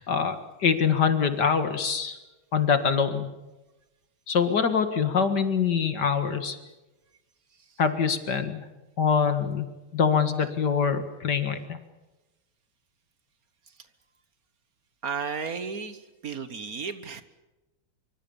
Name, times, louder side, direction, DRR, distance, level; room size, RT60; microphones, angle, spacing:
voice 1, 0.0-2.2 2.5-3.3 4.3-6.6 7.8-8.7 9.0-11.8, left 6 dB, 50° left, 9 dB, 2.3 m, -24 dB
voice 2, 15.0-17.2, right 5 dB, 45° right, 12 dB, 1.5 m, -33 dB
25.5 x 24.5 x 7.2 m, 1.1 s
omnidirectional pair, 2.4 m